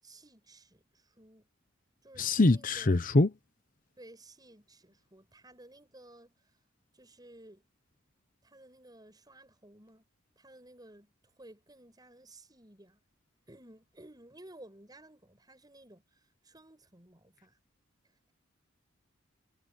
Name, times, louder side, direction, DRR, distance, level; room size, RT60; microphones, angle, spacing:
voice 1, 0.0-1.5 2.0-3.0 4.0-6.4 6.9-7.6 8.4-10.0 10.4-11.1 11.4-13.0 13.5-17.6, right 1 dB, 20° right, 7.8 m, -55 dB
voice 2, 2.2-3.3, left 2 dB, 45° left, 0.8 m, -24 dB
head